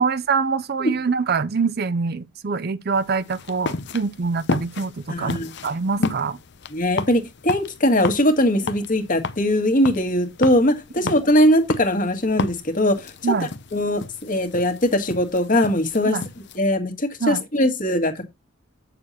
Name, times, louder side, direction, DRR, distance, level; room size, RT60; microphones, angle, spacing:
voice 1, 0.0-6.4 11.0-11.1 13.2-13.5 16.0-16.3 17.2-17.4, right 5 dB, 50° right, 0.5 m, -24 dB
sound 1, 2.9-16.6, left 3 dB, 55° left, 0.7 m, -33 dB
voice 2, 5.1-5.5 6.0-6.1 6.7-13.3 13.7-16.2 16.5-18.3, left 1 dB, 40° left, 1.8 m, -20 dB
8.9 x 6.8 x 4.2 m
head